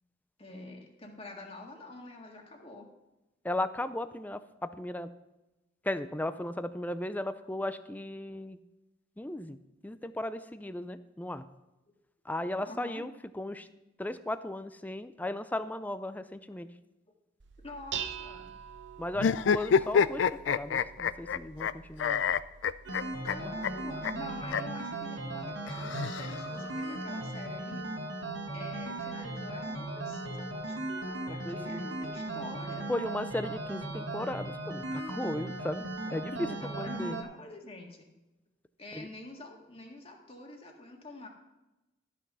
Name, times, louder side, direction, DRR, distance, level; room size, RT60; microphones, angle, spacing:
voice 1, 0.4-2.9 12.7-13.0 17.6-18.5 23.2-27.9 28.5-32.9 36.3-38.1 38.8-41.3, left 2 dB, 30° left, 1 dB, 1.8 m, -46 dB
voice 2, 3.4-5.1 5.8-8.6 9.2-9.6 9.8-11.4 12.2-13.7 14.0-16.7 19.0-22.3 23.4-23.5 31.3-31.8 32.9-35.9 36.1-36.3 36.7-37.2 38.9-39.1, left 1 dB, 10° left, 12 dB, 0.4 m, -36 dB
Dishes pots and pans, 17.4-24.5, right 8 dB, 65° right, 0.8 m, -45 dB
sound 1, 19.2-21.7 22.0-23.3 23.6-23.7 24.0-24.1 24.5-24.6 25.7-26.7, left 7 dB, 70° left, 0.4 m, -27 dB
sound 2, 22.8-37.2, right 2 dB, 90° right, 1.7 m, -37 dB
13.0 x 6.1 x 5.5 m, 0.98 s
head